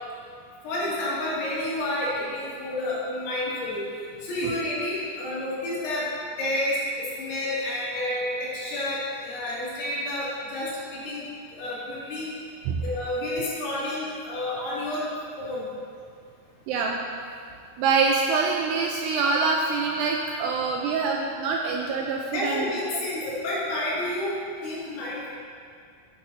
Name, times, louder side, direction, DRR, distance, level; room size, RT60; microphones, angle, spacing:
voice 1, 0.6-3.8 4.2-6.1 6.4-11.3 11.5-12.3 12.8-15.1 15.4-15.7 22.3-24.3 24.6-25.3, left 1 dB, 80° left, -8 dB, 4.6 m, -30 dB
voice 2, 17.8-23.0, right 4 dB, 85° right, 0 dB, 2.4 m, -25 dB
11.0 x 9.5 x 2.7 m, 2.2 s
omnidirectional pair, 5.3 m